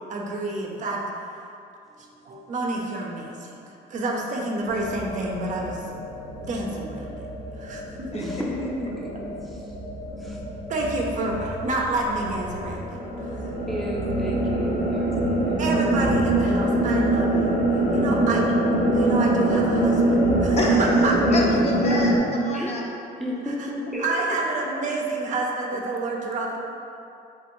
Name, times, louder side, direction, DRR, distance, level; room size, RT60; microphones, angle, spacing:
voice 1, 0.1-1.1 2.3-5.8 6.4-7.3 7.5-8.3 10.7-12.8 13.3-13.4 15.6-17.6 17.9-18.5 18.9-21.2 24.0-26.6, right 2 dB, 45° right, -1 dB, 0.5 m, -29 dB
voice 2, 2.0-2.5 7.7-7.8 8.1-9.8 10.2-10.4 13.7-15.6 21.2-21.4 22.5-22.7 23.2-24.4, equal, ahead, -4 dB, 0.6 m, -33 dB
sound 1, 4.7-22.2, right 1 dB, 75° left, 0.8 m, -24 dB
voice 3, 20.6-22.8, left 1 dB, 40° left, -2 dB, 0.6 m, -29 dB
3.3 x 3.0 x 3.0 m, 2.6 s
cardioid pair, 110°, 17 cm